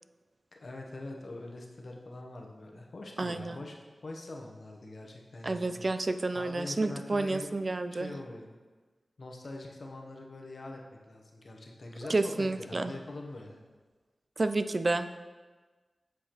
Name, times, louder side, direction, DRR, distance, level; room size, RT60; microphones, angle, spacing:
voice 1, 0.6-3.8 4.0-7.5 7.9-8.5 9.2-13.6, left 2 dB, 65° left, 1 dB, 0.8 m, -43 dB
voice 2, 3.2-3.6 5.4-8.1 12.1-12.9 14.4-15.2, right 2 dB, 50° right, 10 dB, 0.3 m, -30 dB
7.9 x 4.8 x 2.9 m, 1.3 s
cardioid pair, 50°, 0 cm